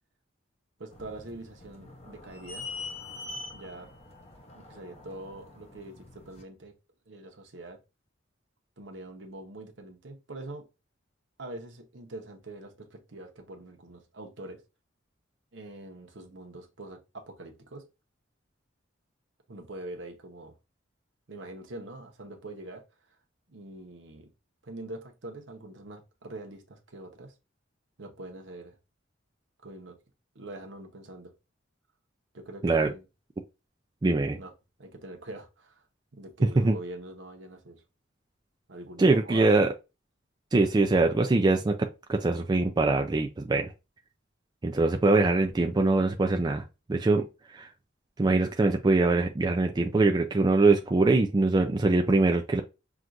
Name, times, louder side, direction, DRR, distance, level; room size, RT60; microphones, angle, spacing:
voice 1, 0.8-2.7 3.5-3.9 4.5-6.7 7.1-7.8 8.8-10.7 11.4-14.6 15.5-17.9 19.5-20.5 21.3-22.8 23.5-24.3 24.6-27.3 28.0-28.7 29.6-30.0 30.3-31.3 32.3-33.0 34.4-34.5 34.8-35.8 36.1-37.8 38.7-39.6, right 2 dB, 65° right, 0.9 m, -44 dB
sound 1, 0.9-6.4, left 3 dB, 35° left, 0.8 m, -44 dB
voice 2, 34.0-34.4 36.6-36.8 39.0-39.7 40.5-43.7 44.6-46.6 46.9-47.3 47.5-47.7 48.2-52.6, right 3 dB, 20° right, 0.3 m, -23 dB
5.9 x 2.5 x 2.5 m
head